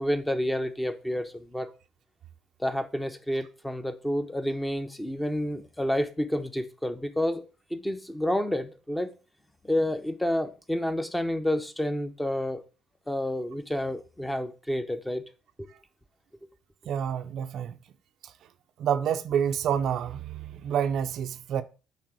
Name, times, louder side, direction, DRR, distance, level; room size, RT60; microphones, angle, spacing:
voice 1, 0.0-1.7 2.6-7.4 7.7-9.1 9.6-12.6 13.1-15.2 15.6-15.7, left 1 dB, 5° left, 0.8 m, -29 dB
voice 2, 16.9-17.7 18.2-18.3 18.8-21.6, right 8 dB, 60° right, 0.5 m, -28 dB
8.5 x 3.4 x 6.1 m
cardioid pair, 130°, 0 cm